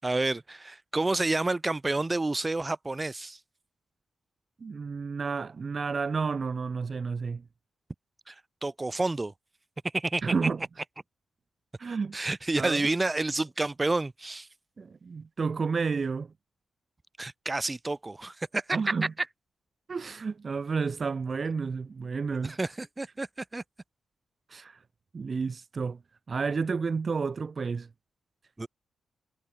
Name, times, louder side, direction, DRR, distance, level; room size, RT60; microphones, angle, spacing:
voice 1, 0.0-3.4 8.3-8.4 8.6-9.3 9.9-10.2 12.1-14.5 17.2-18.8 22.4-23.6 28.6-28.7, right 2 dB, 15° right, 6.7 m, -29 dB
voice 2, 4.6-7.4 10.2-10.6 11.8-12.2 12.6-12.8 14.8-16.3 18.7-19.1 19.9-22.6 24.5-24.8 25.1-26.0 26.3-27.9, right 5 dB, 35° right, 6.0 m, -31 dB
wide cardioid pair, 170°, 0 cm